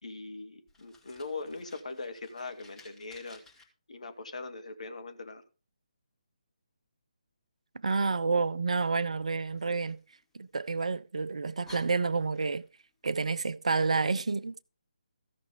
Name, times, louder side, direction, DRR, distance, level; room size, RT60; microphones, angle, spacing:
voice 1, 0.0-3.4 3.9-5.4, left 3 dB, 60° left, 1.9 m, -41 dB
Fire, 0.7-3.6 9.6-10.8 11.3-11.4 11.6-12.8, left 2 dB, 5° left, 1.9 m, -55 dB
voice 2, 7.8-10.0 10.3-12.6 13.0-14.6, right 4 dB, 55° right, 0.6 m, -29 dB
15.0 x 6.0 x 5.2 m
figure-of-eight pair, 145°, 4 cm